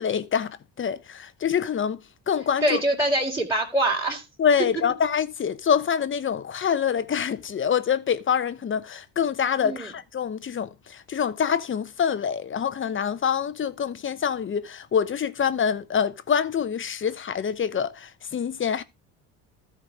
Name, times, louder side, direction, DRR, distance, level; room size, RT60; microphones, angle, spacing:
voice 1, 0.0-2.0 2.3-2.8 4.4-18.8, left 7 dB, 35° left, 1.0 m, -26 dB
voice 2, 2.6-4.2 9.6-9.9, right 1 dB, 10° right, 3.4 m, -24 dB
13.5 x 4.6 x 4.9 m
supercardioid pair, 90°, 37 cm